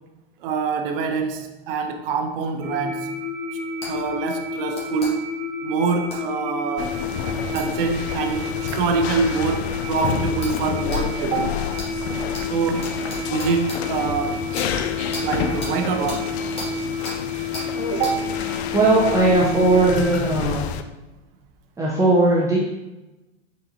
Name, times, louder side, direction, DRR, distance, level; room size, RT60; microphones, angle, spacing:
voice 1, 0.4-3.1 3.9-5.2 5.6-7.0 7.5-11.6 12.4-13.0 13.3-14.4 15.2-16.3 17.9-18.4, right 5 dB, 60° right, 6 dB, 0.5 m, -25 dB
sound 1, 2.6-20.4, left 4 dB, 35° right, 1.2 m, -30 dB
sound 2, 3.8-3.9 4.7-5.1 6.1-6.2 7.6-7.7 8.7-8.8 9.5-9.6 10.4-10.6 10.9-11.0 11.8-11.9 12.3-12.4 12.8-13.8 14.5-14.7 15.1-15.3 15.6-15.7 16.1-16.2 16.6-16.7 17.1-17.2 17.5-17.7 18.0-18.2, left 1 dB, 20° left, 1.4 m, -34 dB
sound 3, 6.8-20.8, left 7 dB, 80° left, 0.5 m, -29 dB
voice 2, 18.7-20.7 21.8-22.6, right 2 dB, 10° right, -5 dB, 0.6 m, -18 dB
4.0 x 3.9 x 2.7 m, 1.0 s
hypercardioid pair, 120°, 32 cm